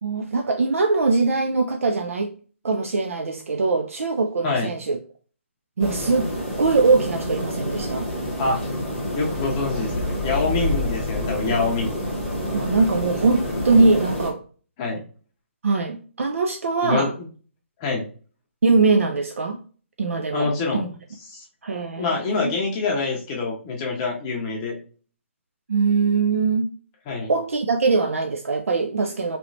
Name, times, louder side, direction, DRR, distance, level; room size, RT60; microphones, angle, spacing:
voice 1, 0.0-2.4 2.6-5.0 5.8-6.3 6.6-8.1 12.5-14.4 15.6-17.1 18.6-19.6 20.0-20.9 21.6-22.5 25.7-26.7 27.3-29.4, right 3 dB, 80° right, 0.4 m, -22 dB
sound 1, 5.8-14.3, left 1 dB, ahead, 0.9 m, -28 dB
voice 2, 9.1-12.0 14.8-15.0 16.8-17.1 17.8-18.0 20.3-20.8 21.3-21.4 22.0-24.8 27.1-27.3, left 3 dB, 20° left, 0.6 m, -25 dB
3.1 x 3.0 x 2.6 m
hypercardioid pair, 155°, 7 cm